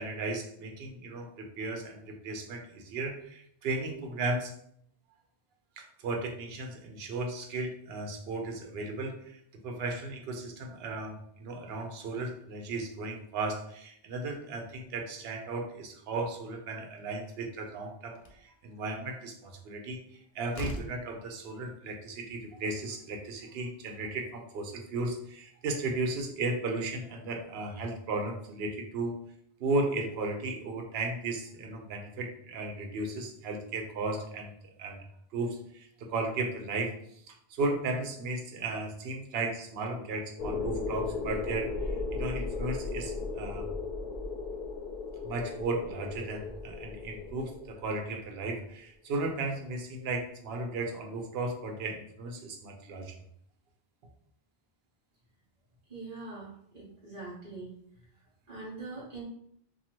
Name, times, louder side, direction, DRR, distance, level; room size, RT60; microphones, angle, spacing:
voice 1, 0.0-4.5 5.8-9.4 9.6-20.0 20.3-29.2 29.6-35.0 35.3-36.9 37.3-43.7 45.2-53.1, right 2 dB, 75° right, 3 dB, 0.8 m, -35 dB
Slam, 18.1-18.5 20.0-20.1 20.5-21.1, left 2 dB, 55° left, 0.4 m, -39 dB
sound 1, 40.4-48.2, left 4 dB, 75° left, 0.9 m, -36 dB
voice 2, 55.9-57.7 58.5-59.2, right 3 dB, 45° right, -9 dB, 1.0 m, -43 dB
2.7 x 2.3 x 2.9 m, 0.67 s
omnidirectional pair, 1.0 m